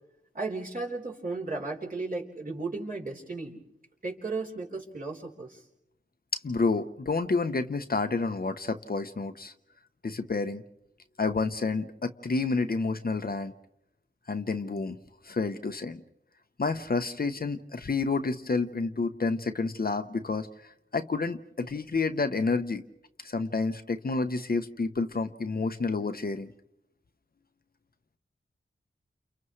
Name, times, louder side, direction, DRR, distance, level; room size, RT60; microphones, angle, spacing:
voice 1, 0.3-3.6 4.0-5.6, right 3 dB, 45° right, -2 dB, 4.0 m, -35 dB
voice 2, 6.4-9.5 10.0-10.6 11.2-13.5 14.3-15.0 15.2-16.0 16.6-20.5 20.9-22.8 23.2-26.5, left 3 dB, 45° left, 8 dB, 0.9 m, -29 dB
29.5 x 29.0 x 3.2 m, 0.84 s
wide cardioid pair, 90°, 21 cm